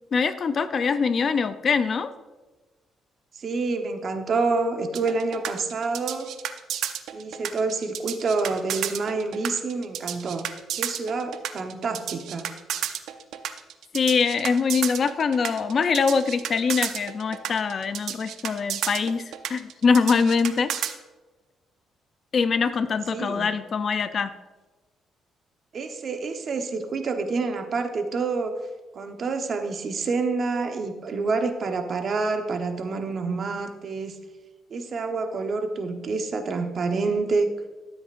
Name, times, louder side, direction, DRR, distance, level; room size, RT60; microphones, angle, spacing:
voice 1, 0.1-2.1 13.9-19.2 19.5-20.7 22.3-24.3, left 5 dB, 50° left, 12 dB, 0.5 m, -23 dB
voice 2, 3.3-6.3 7.1-10.5 10.8-12.5 23.1-23.5 25.7-28.5 28.9-34.1 34.7-37.5, right 4 dB, 50° right, 6 dB, 1.0 m, -27 dB
sound 1, 4.9-20.9, right 10 dB, 80° right, 0.6 m, -32 dB
13.0 x 7.9 x 2.5 m, 1.2 s
cardioid pair, 90°, 0 cm